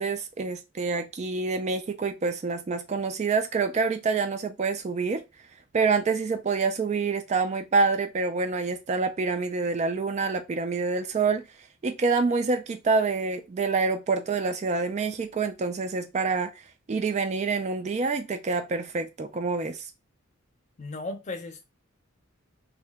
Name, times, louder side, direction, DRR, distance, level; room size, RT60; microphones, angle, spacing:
voice 1, 0.0-5.2 5.7-11.5 11.8-16.5 16.9-19.9, right 4 dB, 35° right, 0.3 m, -27 dB
voice 2, 20.8-21.6, left 2 dB, 35° left, 0.6 m, -35 dB
2.8 x 2.1 x 3.3 m
head